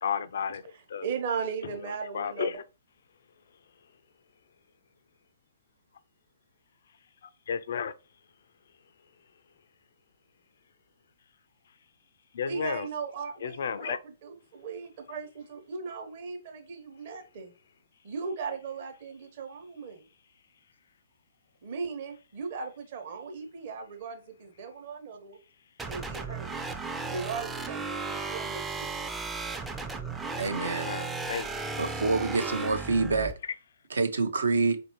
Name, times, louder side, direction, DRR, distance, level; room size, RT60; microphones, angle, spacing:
voice 1, 0.0-0.6 0.9-1.1 2.1-2.6 7.5-7.9 12.3-12.9 13.4-14.0 30.6-31.6, left 7 dB, 60° left, 0.3 m, -32 dB
voice 2, 0.7-2.6 12.5-17.5 18.0-20.1 21.6-25.4 25.9-26.6 27.1-28.9, right 5 dB, 50° right, 0.9 m, -37 dB
sound 1, 25.8-33.3, right 4 dB, 10° right, 0.4 m, -35 dB
voice 3, 30.4-30.9 31.8-33.3 33.9-34.8, right 3 dB, 70° right, 0.6 m, -27 dB
4.4 x 2.6 x 2.9 m
figure-of-eight pair, 120°, 0 cm